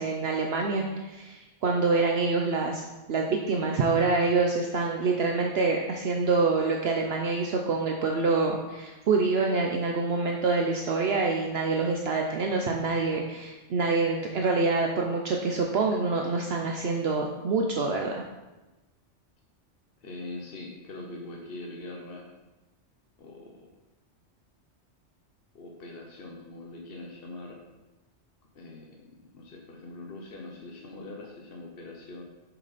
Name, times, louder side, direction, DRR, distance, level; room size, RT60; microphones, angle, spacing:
voice 1, 0.0-2.8 3.1-18.2, right 3 dB, 60° right, 1 dB, 0.9 m, -26 dB
voice 2, 20.0-22.3 23.2-23.6 25.5-27.6 28.5-32.2, left 2 dB, 55° left, -1 dB, 1.2 m, -42 dB
7.4 x 7.1 x 4.1 m, 1.1 s
omnidirectional pair, 1.2 m